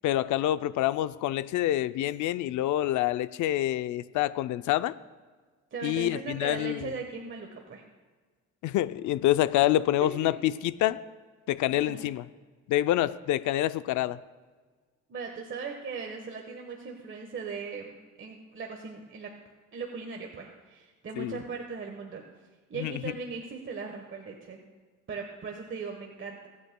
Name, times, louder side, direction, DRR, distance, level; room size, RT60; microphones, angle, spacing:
voice 1, 0.0-4.9 5.8-6.9 8.6-11.0 11.5-12.2 12.7-14.2 21.2-21.4 22.8-23.0, left 13 dB, 75° left, 14 dB, 0.5 m, -27 dB
voice 2, 5.7-7.8 10.0-10.3 11.7-12.1 15.1-19.3 19.7-22.2 22.7-24.6 25.1-26.5, right 5 dB, 40° right, 2 dB, 1.2 m, -38 dB
25.0 x 8.4 x 2.2 m, 1.4 s
cardioid pair, 90°, 30 cm